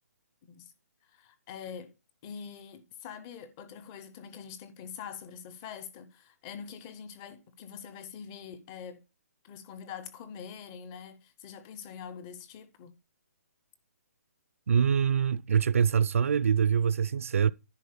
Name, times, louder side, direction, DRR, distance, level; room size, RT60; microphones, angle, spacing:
voice 1, 0.4-0.7 1.0-1.9 2.2-9.0 9.4-13.0, left 7 dB, 10° left, 0.4 m, -44 dB
voice 2, 14.7-17.5, right 7 dB, 60° right, 0.4 m, -24 dB
10.5 x 4.2 x 6.4 m
hypercardioid pair, 180°, 9 cm